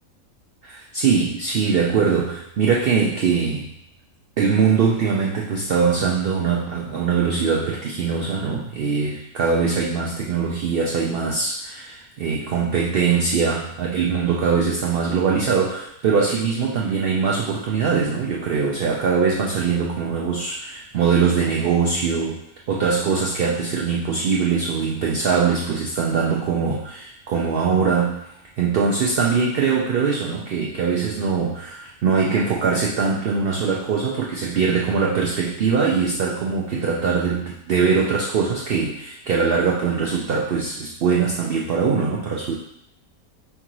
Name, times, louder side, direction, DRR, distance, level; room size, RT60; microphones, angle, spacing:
voice 1, 0.6-3.7 4.4-28.3 28.6-42.5, right 5 dB, 80° right, -3 dB, 0.5 m, -22 dB
5.5 x 2.6 x 2.9 m, 0.75 s
omnidirectional pair, 1.6 m